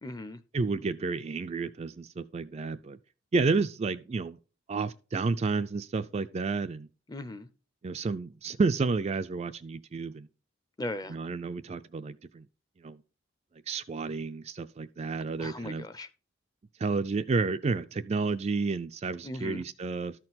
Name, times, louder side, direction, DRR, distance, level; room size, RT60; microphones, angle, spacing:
voice 1, 0.0-0.4 7.1-7.5 10.8-11.2 15.4-16.1 19.2-19.6, left 1 dB, 20° left, 0.6 m, -38 dB
voice 2, 0.5-3.0 3.3-4.4 4.7-6.9 7.8-10.3 11.1-12.5 12.8-13.0 13.7-15.9 16.8-20.1, right 4 dB, 35° right, 0.4 m, -31 dB
12.5 x 4.4 x 4.0 m
head